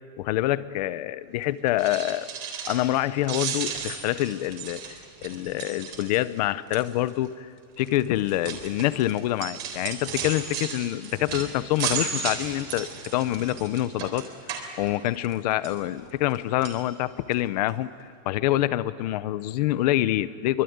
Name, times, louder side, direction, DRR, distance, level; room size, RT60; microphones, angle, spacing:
voice 1, 0.2-2.3 2.6-7.5 7.8-20.6, left 14 dB, 30° left, 16 dB, 0.6 m, -26 dB
sound 1, 1.7-3.0 3.2-6.4 6.7-7.1 7.8-15.3 15.6-16.4 16.6-16.8 17.3-17.4 17.7-17.8, right 7 dB, 30° right, 3.7 m, -35 dB
25.0 x 24.0 x 9.4 m, 2.1 s
supercardioid pair, 175°, 39 cm